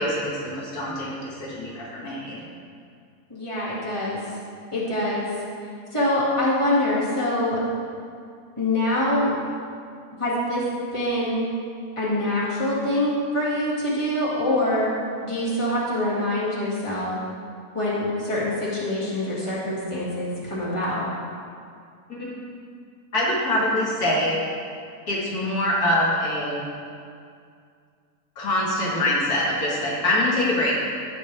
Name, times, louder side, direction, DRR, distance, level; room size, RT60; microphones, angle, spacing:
voice 1, 0.0-2.5 22.1-22.3 23.1-24.4 25.1-26.6 28.4-30.8, left 1 dB, 70° left, -5 dB, 2.1 m, -24 dB
voice 2, 3.3-4.3 4.7-5.3 5.9-7.6 8.6-9.3 10.2-10.6 10.9-11.5 12.0-14.9 15.2-17.1 17.7-21.1, left 1 dB, 20° left, -8 dB, 2.0 m, -24 dB
15.5 x 5.4 x 3.4 m, 2.3 s
omnidirectional pair, 1.7 m